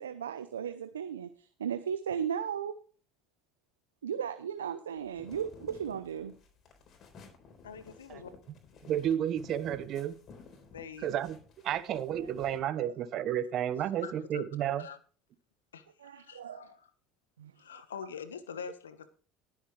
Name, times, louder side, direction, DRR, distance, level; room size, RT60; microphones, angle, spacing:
voice 1, 0.0-2.8 4.0-6.3 12.4-12.9 16.0-16.6 17.4-17.5, right 8 dB, 90° right, 0.7 m, -36 dB
sound 1, 5.0-12.6, left 4 dB, 45° left, 3.9 m, -54 dB
voice 2, 7.6-8.3 10.7-11.1 13.4-15.0 15.7-16.9 17.6-19.1, left 7 dB, 90° left, 1.2 m, -45 dB
voice 3, 8.8-10.2 11.0-11.4 11.6-14.8, right 10 dB, 55° right, 1.2 m, -31 dB
20.0 x 7.3 x 3.2 m
hypercardioid pair, 70°, 0 cm